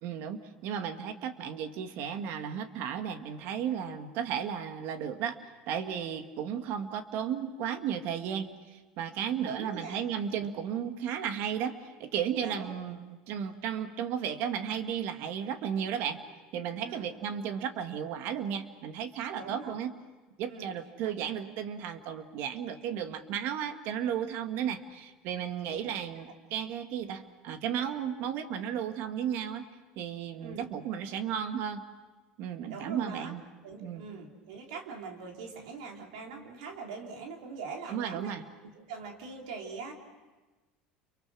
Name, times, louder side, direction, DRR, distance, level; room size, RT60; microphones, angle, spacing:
voice 1, 0.0-5.4 5.7-16.2 16.5-19.9 20.4-29.7 30.0-31.8 32.4-33.4 33.8-34.0 37.9-38.4, right 8 dB, 65° right, 8 dB, 1.9 m, -34 dB
voice 2, 9.5-10.0 10.3-10.5 12.4-12.7 16.8-17.1 19.3-19.8 20.5-20.8 25.7-25.9 26.2-26.3 30.4-30.6 32.7-33.3 33.6-38.4 38.6-39.9, right 5 dB, 90° right, 1 dB, 3.6 m, -42 dB
30.0 x 23.5 x 6.3 m, 1.2 s
supercardioid pair, 105°, 4 cm